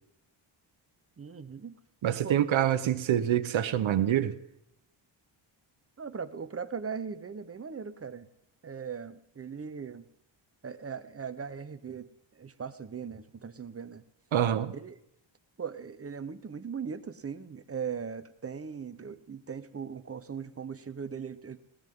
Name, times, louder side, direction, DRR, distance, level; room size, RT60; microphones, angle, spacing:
voice 1, 1.2-1.7 2.2-2.5 6.0-8.3 8.6-10.0 10.6-14.0 14.7-15.0 15.6-21.6, right 6 dB, 30° right, 1.0 m, -39 dB
voice 2, 2.0-4.3 14.3-14.7, right 10 dB, 70° right, 1.2 m, -26 dB
21.0 x 18.0 x 3.8 m
wide cardioid pair, 155°, 48 cm